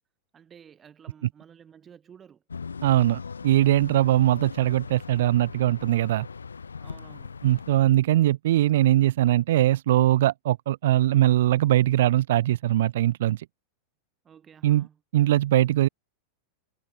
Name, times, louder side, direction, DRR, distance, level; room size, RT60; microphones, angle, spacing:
voice 1, 0.3-2.4 6.8-7.4 14.2-15.0, right 8 dB, 25° right, 5.8 m, -52 dB
sound 1, 2.5-7.8, left 5 dB, 75° left, 1.5 m, -40 dB
voice 2, 2.8-6.3 7.4-13.4 14.6-14.9 15.1-15.9, right 13 dB, 55° right, 0.5 m, -21 dB
figure-of-eight pair, 90°, 0 cm